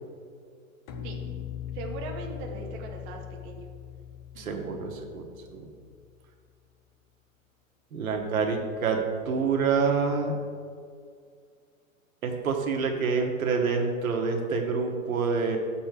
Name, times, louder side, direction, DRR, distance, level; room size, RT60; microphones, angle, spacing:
sound 1, 0.9-6.1, left 9 dB, 25° left, 0.5 m, -40 dB
voice 1, 1.7-3.6 4.3-4.7, right 4 dB, 30° right, 2 dB, 0.8 m, -40 dB
voice 2, 4.4-5.3 5.5-5.7 7.9-10.3 12.2-15.6, right 5 dB, 85° right, 3 dB, 1.4 m, -27 dB
6.8 x 4.3 x 6.6 m, 2.1 s
hypercardioid pair, 145°, 41 cm